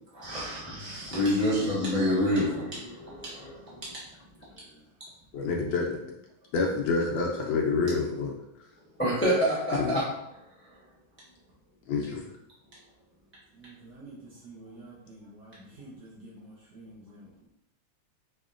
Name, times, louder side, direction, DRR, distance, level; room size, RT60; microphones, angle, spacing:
voice 1, 0.1-4.0 9.0-10.1, equal, 10° left, -8 dB, 0.6 m, -27 dB
voice 2, 4.4-4.8 13.5-17.5, right 2 dB, 65° right, -7 dB, 1.6 m, -49 dB
voice 3, 5.3-6.0 6.5-8.3 9.8-10.0 11.9-12.2, left 4 dB, 75° left, -1 dB, 1.4 m, -27 dB
4.9 x 2.8 x 2.5 m, 0.80 s
omnidirectional pair, 2.2 m